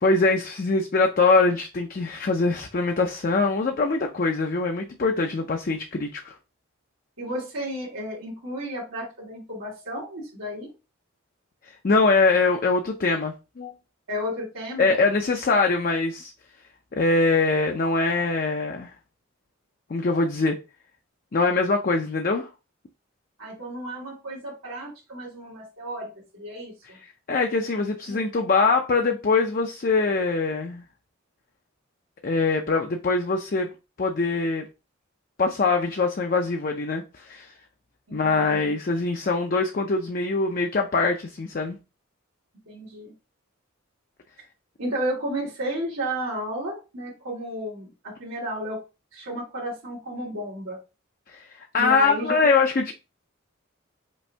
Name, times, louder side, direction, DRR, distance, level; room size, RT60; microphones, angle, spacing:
voice 1, 0.0-6.4 11.7-13.7 14.8-16.3 16.9-18.9 19.9-20.6 21.3-22.5 26.8-30.8 32.2-33.7 34.0-34.7 35.4-37.5 38.1-41.8 51.3-52.9, left 3 dB, 45° left, 0.4 m, -23 dB
voice 2, 7.2-10.7 14.1-14.9 23.4-27.0 38.1-38.6 42.7-43.1 44.8-48.8 49.1-50.8 51.8-52.4, right 1 dB, 85° right, 1.7 m, -33 dB
5.2 x 2.6 x 3.3 m
head